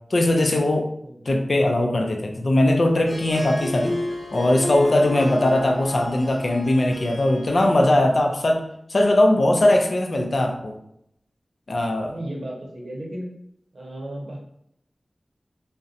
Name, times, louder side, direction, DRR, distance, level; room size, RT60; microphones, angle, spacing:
voice 1, 0.1-0.9 1.3-4.0 4.3-8.6 8.9-10.7 11.7-12.1, left 1 dB, 60° left, 3 dB, 0.4 m, -20 dB
voice 2, 1.0-1.4 12.1-13.3 13.7-14.4, right 1 dB, 80° right, -2 dB, 0.7 m, -34 dB
Harp, 2.9-8.4, left 1 dB, 20° left, 0.8 m, -33 dB
2.7 x 2.1 x 2.4 m, 0.75 s
wide cardioid pair, 65°, 0 cm